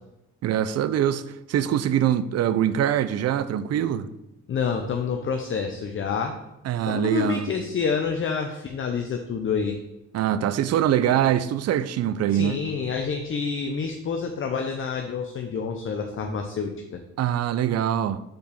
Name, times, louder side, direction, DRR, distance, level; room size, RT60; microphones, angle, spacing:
voice 1, 0.4-4.1 6.6-7.5 10.1-12.6 16.2-16.3 17.2-18.2, right 10 dB, 55° right, 0.5 m, -23 dB
voice 2, 4.5-6.3 6.9-9.8 12.3-17.0, left 5 dB, 45° left, 0.7 m, -28 dB
5.2 x 4.6 x 5.2 m
cardioid pair, 90°, 30 cm